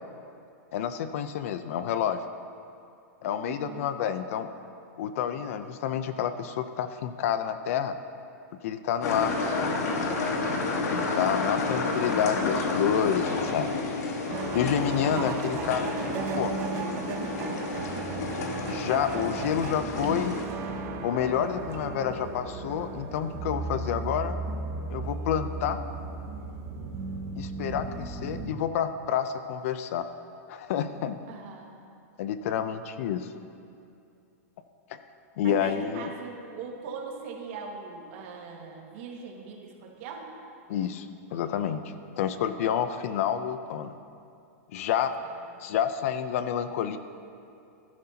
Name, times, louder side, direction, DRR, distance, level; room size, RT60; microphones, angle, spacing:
voice 1, 0.7-2.2 3.2-4.5 5.0-8.0 8.6-9.8 10.9-13.7 14.5-15.9 16.4-16.6 18.7-20.3 21.0-24.4 24.9-25.8 27.3-30.1 30.5-31.2 32.2-33.3 34.9-35.0 35.4-36.1 40.7-41.8 42.2-43.9 44.7-45.2 45.6-47.0, left 9 dB, 60° left, 11 dB, 0.6 m, -29 dB
voice 2, 3.5-3.9 31.3-31.7 35.4-40.3 45.4-45.6, right 5 dB, 50° right, 0 dB, 1.9 m, -40 dB
sound 1, 9.0-20.5, left 3 dB, 90° left, 1.7 m, -30 dB
sound 2, 14.3-28.5, right 4 dB, 30° right, 1.0 m, -35 dB
18.5 x 11.5 x 2.9 m, 2.6 s
supercardioid pair, 155°, 9 cm